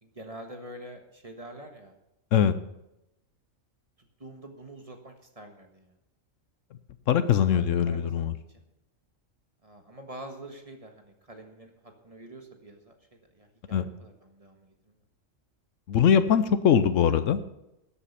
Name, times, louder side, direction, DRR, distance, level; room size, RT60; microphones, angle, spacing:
voice 1, 0.0-1.9 4.2-5.9 7.5-8.6 9.6-14.9, right 1 dB, 30° right, 4 dB, 1.5 m, -46 dB
voice 2, 7.1-8.3 13.7-13.9 15.9-17.4, left 8 dB, 75° left, 13 dB, 1.0 m, -22 dB
12.5 x 8.5 x 5.6 m, 0.87 s
omnidirectional pair, 1.3 m